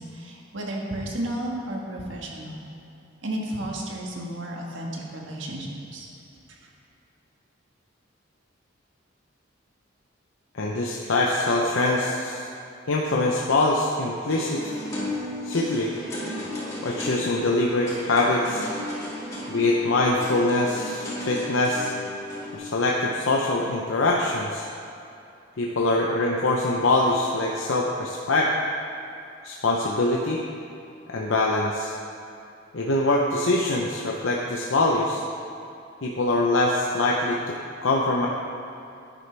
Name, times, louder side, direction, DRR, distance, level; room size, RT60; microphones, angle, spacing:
voice 1, 0.0-2.7 3.2-6.1 6.5-6.6, right 1 dB, 70° right, -1 dB, 1.6 m, -33 dB
voice 2, 10.5-12.5 12.9-14.6 15.4-15.9 16.8-18.6 19.5-21.9 22.5-24.6 25.6-28.5 29.4-30.4 31.1-31.9 32.7-35.2 36.0-37.5 37.8-38.3, left 2 dB, 80° left, -2 dB, 0.8 m, -23 dB
sound 1, 14.3-22.6, left 1 dB, 15° left, 2.4 m, -34 dB
11.0 x 9.9 x 3.4 m, 2.8 s
head